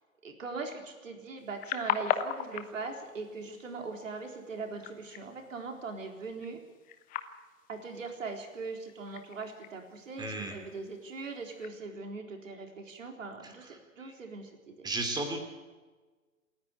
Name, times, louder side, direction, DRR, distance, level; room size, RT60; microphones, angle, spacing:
voice 1, 0.2-6.6 7.7-14.9, right 4 dB, 65° right, 3 dB, 4.0 m, -40 dB
sound 1, 1.4-11.7, left 10 dB, 20° left, 1.1 m, -40 dB
voice 2, 10.2-10.6 13.4-14.1 14.8-15.4, right 2 dB, 10° right, 4 dB, 3.1 m, -35 dB
27.5 x 10.5 x 9.1 m, 1.3 s
figure-of-eight pair, 115°, 42 cm